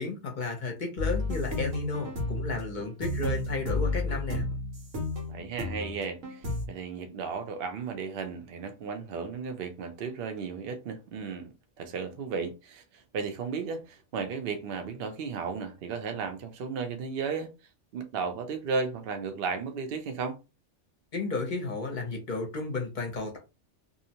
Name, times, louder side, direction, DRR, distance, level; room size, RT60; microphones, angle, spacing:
voice 1, 0.0-4.4 21.1-23.4, left 3 dB, 50° left, 0.7 m, -33 dB
sound 1, 1.0-6.7, left 2 dB, 90° right, 1.2 m, -32 dB
voice 2, 5.3-17.5 17.9-20.4, right 5 dB, 60° right, 0.7 m, -34 dB
2.6 x 2.0 x 2.7 m
omnidirectional pair, 1.2 m